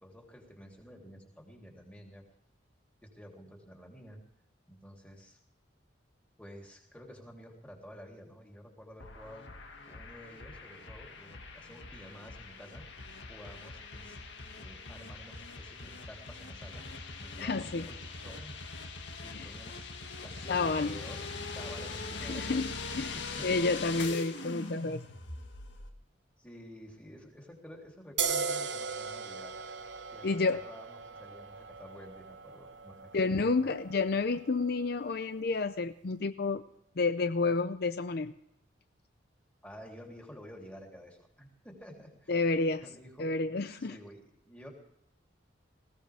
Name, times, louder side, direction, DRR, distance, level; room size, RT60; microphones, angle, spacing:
voice 1, 0.0-2.2 3.0-4.2 4.7-5.4 6.4-9.4 9.9-14.2 14.6-16.8 17.2-18.5 19.2-19.9 20.2-22.6 22.9-23.6 26.4-29.5 30.1-33.7 39.6-42.3 42.8-43.3 43.8-44.2 44.5-44.7, equal, 10° left, 0 dB, 3.2 m, -51 dB
sound 1, 9.0-25.9, left 3 dB, 70° left, 2.0 m, -42 dB
voice 2, 17.4-17.9 19.3-19.5 20.5-21.0 22.3-23.2 23.4-25.0 30.2-30.6 33.1-36.6 37.0-38.3 42.3-42.8 43.2-44.0, left 3 dB, 55° left, 11 dB, 0.6 m, -30 dB
sound 2, 28.2-35.5, right 6 dB, 70° right, 1.2 m, -39 dB
20.0 x 16.5 x 3.5 m, 0.75 s
head